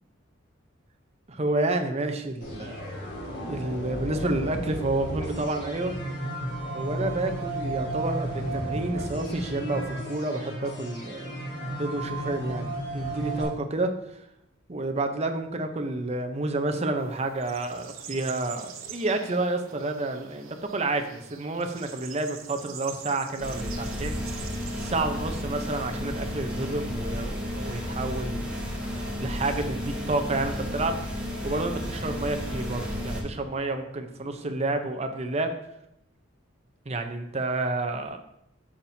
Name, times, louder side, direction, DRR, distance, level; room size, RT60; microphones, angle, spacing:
voice 1, 1.3-2.7 3.5-5.9 6.7-12.7 12.9-14.2 14.7-24.2 24.8-28.6 29.2-35.5 36.9-38.2, right 2 dB, 30° right, 6 dB, 0.7 m, -30 dB
sound 1, 2.4-13.4, right 1 dB, 55° left, 3.0 m, -33 dB
sound 2, 17.0-24.8, right 7 dB, 85° right, 0.8 m, -44 dB
sound 3, 23.4-33.2, left 1 dB, 5° right, 1.6 m, -32 dB
8.5 x 7.3 x 2.7 m, 0.80 s
head